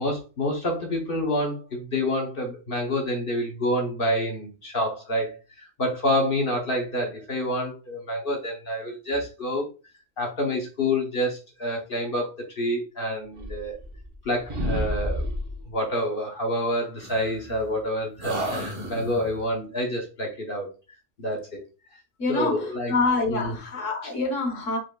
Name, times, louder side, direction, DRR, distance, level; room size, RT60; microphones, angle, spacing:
voice 1, 0.0-9.7 10.2-13.8 14.2-15.3 15.7-20.7 21.2-21.6 22.3-23.0 23.3-23.6 24.0-24.1, left 1 dB, 45° left, 1.0 m, -28 dB
sound 1, 13.3-14.2 14.5-15.6 17.0-17.8 18.2-19.5, equal, 25° right, 1.0 m, -31 dB
voice 2, 22.2-24.8, left 3 dB, 70° left, 1.5 m, -26 dB
5.1 x 4.4 x 2.3 m
omnidirectional pair, 1.4 m